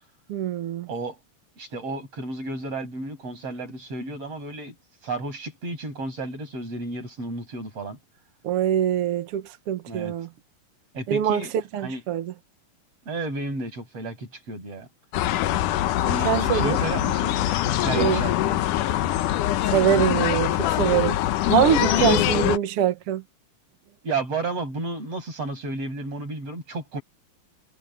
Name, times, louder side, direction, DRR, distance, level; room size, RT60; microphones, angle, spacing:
voice 1, 0.3-0.9 8.4-10.3 11.1-11.4 11.7-12.3 16.2-16.8 17.9-18.2 19.7-21.2 21.5-23.2, right 9 dB, 65° right, 1.4 m, -23 dB
voice 2, 0.9-1.2 1.6-4.7 5.0-8.0 9.9-10.1 10.9-11.5 11.8-12.0 13.1-14.9 16.0-17.4 17.6-18.6 22.0-22.3 24.0-27.0, right 2 dB, 40° right, 8.0 m, -32 dB
sound 1, 15.1-22.6, left 13 dB, 75° left, 2.0 m, -23 dB
omnidirectional pair, 4.4 m